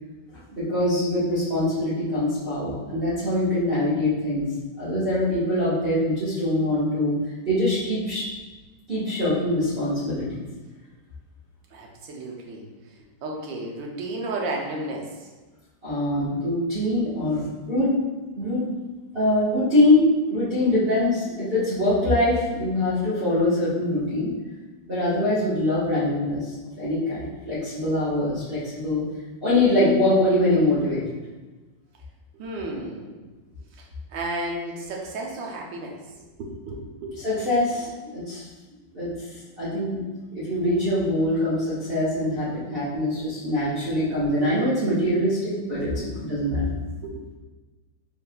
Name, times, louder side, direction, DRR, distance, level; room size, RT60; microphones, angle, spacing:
voice 1, 0.5-4.5 4.8-7.1 7.4-8.2 8.9-10.4 15.8-17.4 17.7-17.9 18.3-18.7 19.1-24.3 24.8-29.0 29.4-31.0 37.2-38.4 38.9-39.3 39.6-40.0 40.3-45.9 46.2-46.6, left 1 dB, 30° right, -13 dB, 1.6 m, -23 dB
voice 2, 11.7-12.6 13.2-15.3 32.3-33.2 33.8-36.0 36.4-37.2 46.0-46.1 47.0-47.2, right 2 dB, 70° right, -1 dB, 1.4 m, -33 dB
5.7 x 3.6 x 2.3 m, 1.2 s
omnidirectional pair, 2.2 m